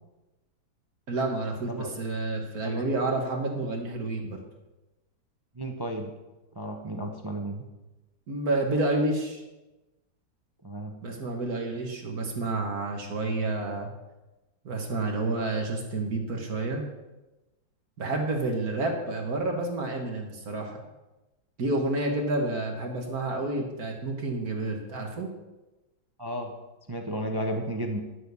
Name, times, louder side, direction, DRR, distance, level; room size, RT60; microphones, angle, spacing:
voice 1, 1.1-4.4 8.3-9.4 11.0-13.9 14.7-16.8 18.0-20.8 21.6-25.3, right 2 dB, 50° right, 2 dB, 1.8 m, -29 dB
voice 2, 2.6-3.2 5.5-6.1 6.5-7.6 10.6-10.9 26.2-26.5 26.9-28.0, equal, 30° right, 3 dB, 0.4 m, -33 dB
11.5 x 6.5 x 6.8 m, 1.1 s
omnidirectional pair, 2.1 m